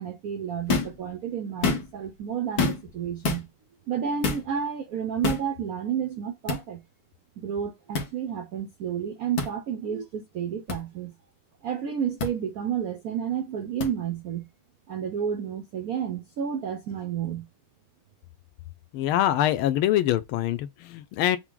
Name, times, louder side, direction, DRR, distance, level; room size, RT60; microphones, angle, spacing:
voice 1, 0.0-3.5 3.9-6.8 7.4-11.1 11.6-14.5 14.9-17.5, right 8 dB, 90° right, 0.7 m, -31 dB
sound 1, 0.7-1.0 1.5-2.1 2.6-2.9 3.2-3.4 4.2-4.5 5.2-5.5 6.5-6.6 7.9-8.1 9.4-9.5 10.7-10.8 12.2-12.3 13.8-13.9, left 4 dB, 55° left, 1.5 m, -26 dB
voice 2, 18.9-21.4, left 12 dB, 80° left, 1.4 m, -24 dB
5.8 x 2.1 x 3.7 m
omnidirectional pair, 2.4 m